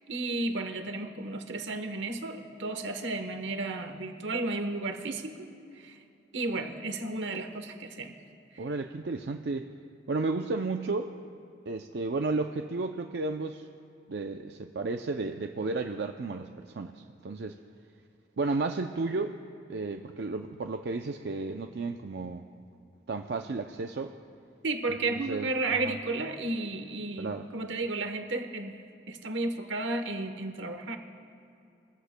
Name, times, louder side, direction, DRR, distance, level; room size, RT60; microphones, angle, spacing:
voice 1, 0.0-6.0 6.3-8.1 8.5-8.6 24.6-31.0, right 2 dB, 80° right, 6 dB, 1.1 m, -33 dB
voice 2, 8.6-9.7 10.1-11.1 11.7-13.7 14.1-17.6 18.4-19.4 19.7-22.5 23.1-24.1 25.2-25.9 27.2-27.5, right 3 dB, 65° right, 5 dB, 0.5 m, -33 dB
23.0 x 14.5 x 2.2 m, 2.7 s
head